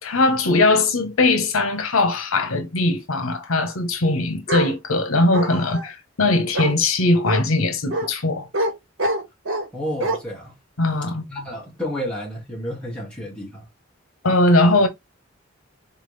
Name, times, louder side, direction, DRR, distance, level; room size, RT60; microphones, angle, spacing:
voice 1, 0.0-8.5 10.8-11.2 14.2-14.9, left 2 dB, 90° left, 1.0 m, -20 dB
Bark, 4.5-4.7 5.3-5.9 6.5-6.7 7.3-7.4 7.9-8.1 8.5-8.7 9.0-9.7 10.0-10.2, right 1 dB, 75° right, 1.5 m, -24 dB
voice 2, 9.7-10.5 11.3-13.6, equal, 5° left, 2.2 m, -30 dB
4.2 x 3.6 x 3.3 m
head